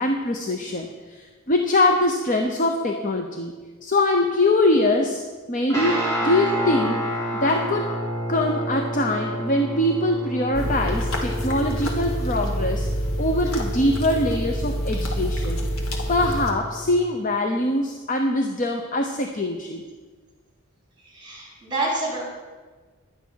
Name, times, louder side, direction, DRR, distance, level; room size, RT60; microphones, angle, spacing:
voice 1, 0.0-3.5 3.8-5.2 5.5-7.0 7.3-7.9 8.3-12.9 13.2-15.7 16.1-19.8, left 1 dB, 35° left, 3 dB, 0.8 m, -23 dB
Guitar, 5.7-17.1, equal, 15° left, 3.5 m, -30 dB
sound 1, 10.5-16.5, equal, 75° left, 2.0 m, -27 dB
voice 2, 21.0-22.2, right 2 dB, 20° right, -3 dB, 3.2 m, -28 dB
11.5 x 9.4 x 6.4 m, 1.4 s
head